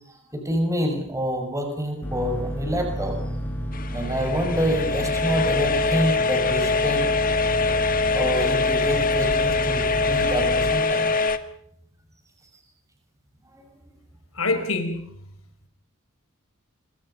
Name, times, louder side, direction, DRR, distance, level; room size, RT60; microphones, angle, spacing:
voice 1, 0.1-3.2 3.9-7.1 8.1-11.1 13.5-13.6, equal, 15° right, 4 dB, 5.9 m, -27 dB
sound 1, 2.0-10.8, equal, 10° left, 4.6 m, -31 dB
sound 2, 3.7-11.4, left 3 dB, 40° left, 1.6 m, -23 dB
voice 2, 14.3-15.3, left 3 dB, 70° left, 7 dB, 4.6 m, -26 dB
26.5 x 25.0 x 5.5 m, 0.69 s
head